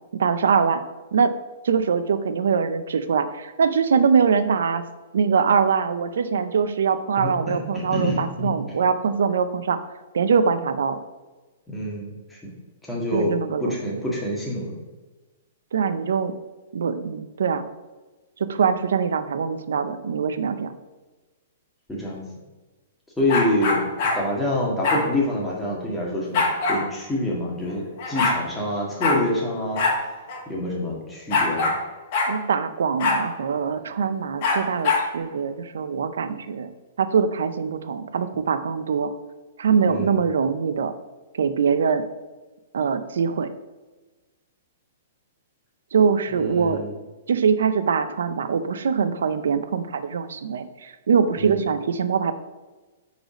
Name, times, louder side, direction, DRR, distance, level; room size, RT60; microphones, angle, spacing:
voice 1, 0.1-0.8 1.1-1.3 1.6-4.8 5.1-9.8 10.1-11.0 13.1-13.8 15.7-16.3 16.7-17.7 18.4-20.7 32.3-36.7 37.0-39.1 39.6-40.9 41.3-42.0 42.7-43.5 45.9-46.8 47.3-52.3, right 6 dB, 80° right, 11 dB, 0.5 m, -23 dB
voice 2, 7.2-8.5 11.7-12.4 12.9-13.3 13.6-14.7 21.9-22.2 23.2-23.8 24.1-26.4 26.7-29.8 30.5-31.7 39.9-40.2 46.3-46.9 51.4-51.6, left 1 dB, 5° left, -5 dB, 1.7 m, -26 dB
sound 1, 23.3-24.2 24.8-25.0 26.3-26.8 27.7-27.8 28.0-28.4 29.0-29.2 29.8-30.0 30.3-30.4 31.3-31.8 32.1-32.3 33.0-33.2 34.4-35.1, left 3 dB, 50° left, 1.6 m, -22 dB
4.9 x 4.0 x 5.0 m, 1.2 s
hypercardioid pair, 135°, 0 cm